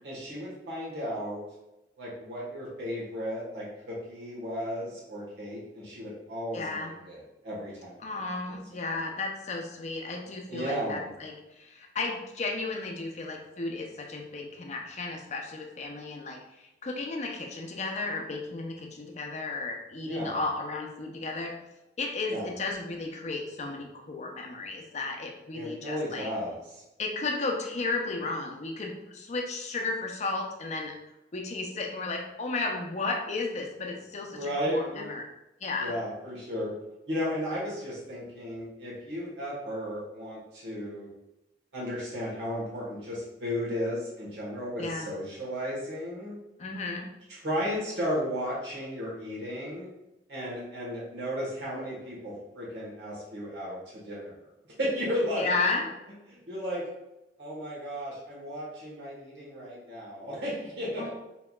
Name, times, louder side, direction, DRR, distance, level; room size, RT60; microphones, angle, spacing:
voice 1, 0.0-1.4 2.0-8.0 8.7-8.9 10.5-11.1 20.0-20.4 22.3-22.5 25.5-26.8 34.3-35.1 35.8-36.7 37.1-41.1 41.7-46.4 47.3-49.9 50.3-53.8 54.0-54.3 54.8-55.5 56.3-56.9 57.4-61.1, equal, 80° right, -7 dB, 1.3 m, -34 dB
voice 2, 6.5-6.9 8.0-21.5 22.0-26.3 27.0-31.0 31.3-35.2 35.6-36.0 44.8-45.1 46.6-47.1 55.3-55.9 61.0-61.1, left 3 dB, 40° left, 2 dB, 0.5 m, -34 dB
4.4 x 2.8 x 2.3 m, 0.95 s
head